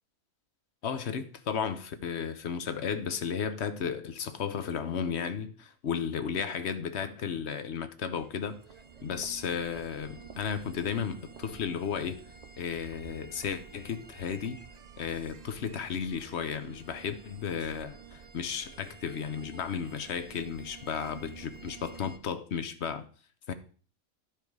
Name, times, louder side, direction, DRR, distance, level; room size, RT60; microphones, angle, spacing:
voice 1, 0.8-8.6 9.0-12.2 12.6-14.6 15.0-23.1 23.5-23.6, left 7 dB, 55° left, 1.0 m, -34 dB
sound 1, 8.2-22.2, right 5 dB, 50° right, 0.5 m, -50 dB
12.0 x 4.7 x 4.7 m
omnidirectional pair, 1.5 m